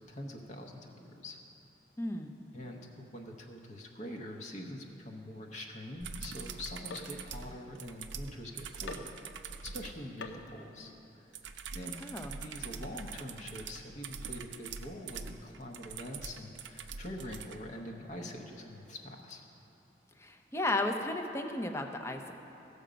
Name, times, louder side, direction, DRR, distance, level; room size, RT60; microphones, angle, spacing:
voice 1, 0.0-1.4 2.5-10.9 11.2-11.3 11.7-12.0 12.3-19.4, left 1 dB, 40° left, 1 dB, 0.9 m, -44 dB
voice 2, 2.0-2.4 12.0-12.3 20.2-22.3, left 2 dB, 15° left, 4 dB, 0.6 m, -34 dB
sound 1, 5.9-8.4 8.9-9.4 10.2-10.5, left 3 dB, 80° left, 0.6 m, -48 dB
sound 2, 6.0-10.0 11.3-17.6 19.3-19.4, right 6 dB, 85° right, 0.5 m, -44 dB
15.5 x 6.8 x 5.1 m, 2.9 s
head